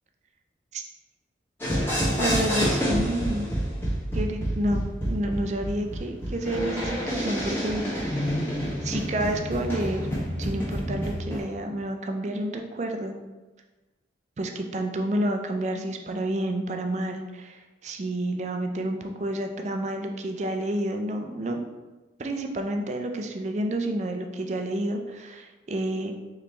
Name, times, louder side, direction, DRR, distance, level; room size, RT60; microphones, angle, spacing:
sound 1, 1.6-11.4, equal, 10° left, 1.1 m, -28 dB
voice 1, 2.2-3.5 4.1-8.3 8.8-10.1 10.4-13.1 14.4-21.6 22.2-26.1, right 1 dB, 40° right, 4 dB, 0.4 m, -29 dB
4.2 x 3.2 x 3.2 m, 1.2 s
head